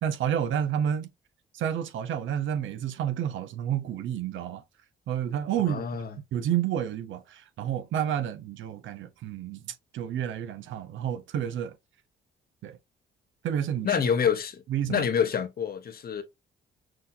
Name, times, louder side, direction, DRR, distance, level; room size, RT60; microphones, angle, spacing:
voice 1, 0.0-1.1 1.5-4.6 5.1-5.8 6.3-11.7 12.6-12.8 13.4-13.9 14.7-15.0, right 9 dB, 75° right, 0.7 m, -30 dB
voice 2, 5.7-6.2 13.8-14.6 14.9-16.2, left 7 dB, 50° left, 1.0 m, -27 dB
6.2 x 2.7 x 2.6 m
cardioid pair, 90°, 20 cm